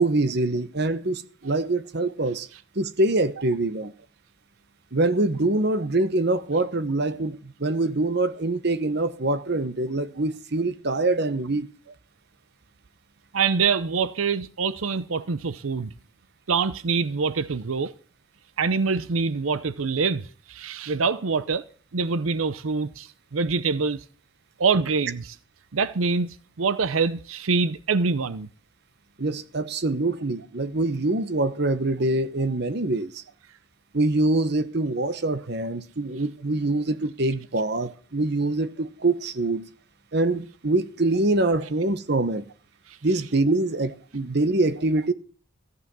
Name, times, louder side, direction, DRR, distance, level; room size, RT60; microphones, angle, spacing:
voice 1, 0.0-2.5 2.7-3.9 4.9-11.7 29.2-33.2 33.9-39.6 40.1-42.4 43.0-45.1, right 2 dB, 55° right, 1.0 m, -24 dB
voice 2, 13.3-15.9 16.5-17.9 18.6-21.6 21.9-24.0 24.6-25.3 25.7-28.5 42.9-43.0, right 5 dB, 90° right, 0.7 m, -25 dB
14.5 x 9.5 x 6.2 m
head